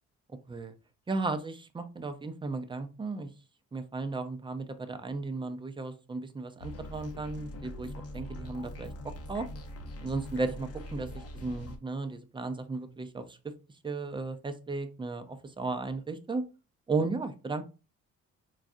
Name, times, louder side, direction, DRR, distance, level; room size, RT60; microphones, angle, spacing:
voice 1, 1.1-3.3 3.7-9.5 10.0-13.4 13.8-16.4 16.9-17.6, right 3 dB, 15° right, 8 dB, 0.4 m, -35 dB
sound 1, 6.6-11.8, left 1 dB, 55° left, 0.7 m, -42 dB
3.9 x 2.3 x 2.5 m, 0.32 s
cardioid pair, 90°, 30 cm